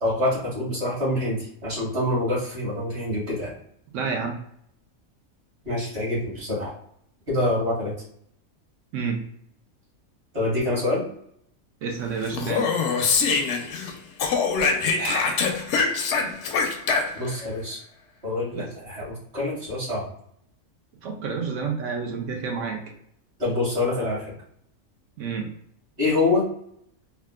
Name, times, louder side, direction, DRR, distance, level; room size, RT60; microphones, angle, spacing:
voice 1, 0.0-3.5 5.6-6.7 7.3-7.9 10.3-11.0 15.0-15.5 17.1-17.8 18.2-20.1 23.4-24.3 26.0-26.5, left 2 dB, 45° right, -6 dB, 1.6 m, -26 dB
voice 2, 3.9-4.4 8.9-9.2 11.8-12.7 18.5-18.7 21.0-22.8 25.2-25.5, right 5 dB, 70° right, 2 dB, 0.9 m, -29 dB
Speech, 12.3-13.9 14.2-17.4, left 5 dB, 65° left, 0.8 m, -24 dB
3.6 x 2.3 x 2.2 m, 0.69 s
omnidirectional pair, 1.5 m